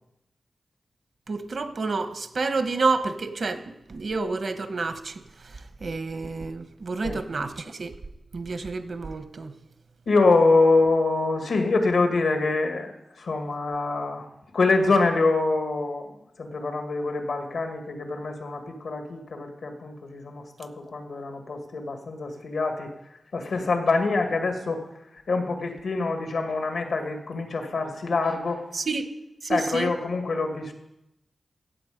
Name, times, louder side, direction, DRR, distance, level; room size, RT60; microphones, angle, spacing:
voice 1, 1.3-7.9 8.3-9.5 28.7-29.1 29.4-29.9, right 3 dB, 65° right, 9 dB, 1.1 m, -29 dB
voice 2, 10.1-14.3 14.5-16.1 16.4-22.9 23.3-24.8 25.1-28.6 29.5-30.7, left 3 dB, 85° left, 5 dB, 2.0 m, -25 dB
16.0 x 7.8 x 5.2 m, 0.88 s
cardioid pair, 60°, 0 cm